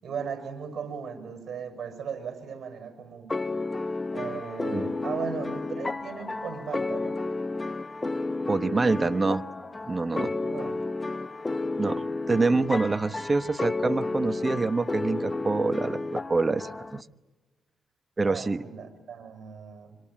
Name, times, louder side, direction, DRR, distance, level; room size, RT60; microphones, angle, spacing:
voice 1, 0.0-3.4 4.1-7.2 10.4-10.8 18.2-20.0, right 6 dB, 60° right, 7 dB, 6.4 m, -37 dB
sound 1, 3.3-17.0, left 3 dB, 25° left, 0.8 m, -32 dB
voice 2, 8.5-9.4 9.9-10.3 11.8-17.0 18.2-18.6, right 3 dB, 30° right, 12 dB, 1.1 m, -26 dB
26.0 x 25.5 x 8.9 m, 1.3 s
cardioid pair, 70°, 0 cm